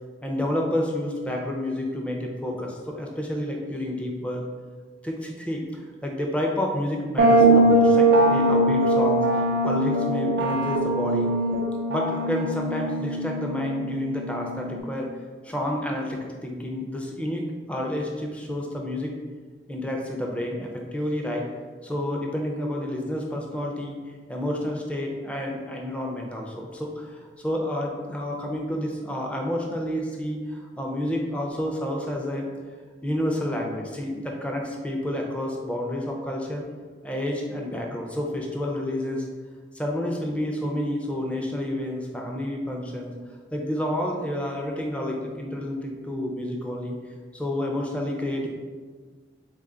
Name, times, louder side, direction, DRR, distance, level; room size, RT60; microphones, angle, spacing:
voice 1, 0.2-4.4 5.0-11.3 11.9-15.1 15.4-19.2 19.7-21.5 21.8-24.0 24.3-32.5 33.0-36.6 37.0-39.3 39.7-43.1 43.5-46.9 47.3-48.5, left 1 dB, 5° left, 0 dB, 0.4 m, -29 dB
sound 1, 7.2-14.8, right 1 dB, 55° right, 0.5 m, -21 dB
3.5 x 2.3 x 3.7 m, 1.5 s
head